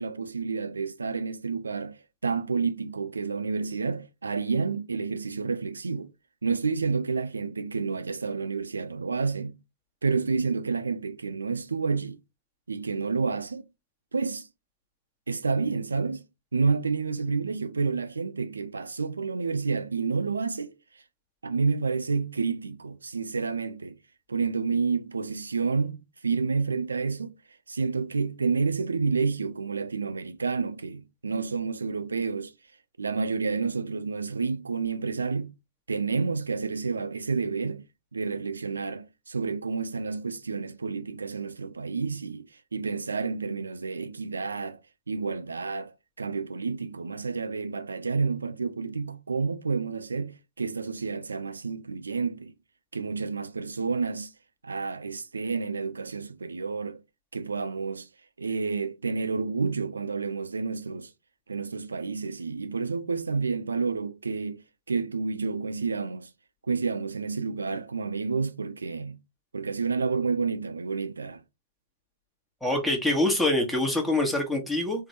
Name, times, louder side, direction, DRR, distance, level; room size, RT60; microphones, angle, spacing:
voice 1, 0.0-6.1 6.4-9.6 10.0-12.2 12.7-13.7 14.1-14.5 15.3-16.2 16.5-21.0 21.4-24.0 24.3-27.4 27.7-32.5 33.0-35.5 35.9-37.9 38.1-44.8 45.1-52.5 52.9-54.3 54.6-57.0 57.3-58.1 58.4-61.1 61.5-66.3 66.6-69.2 69.5-71.4, right 4 dB, 80° right, 0.5 m, -29 dB
voice 2, 72.6-75.1, left 1 dB, ahead, 1.3 m, -25 dB
3.3 x 3.2 x 2.7 m
figure-of-eight pair, 110°, 0 cm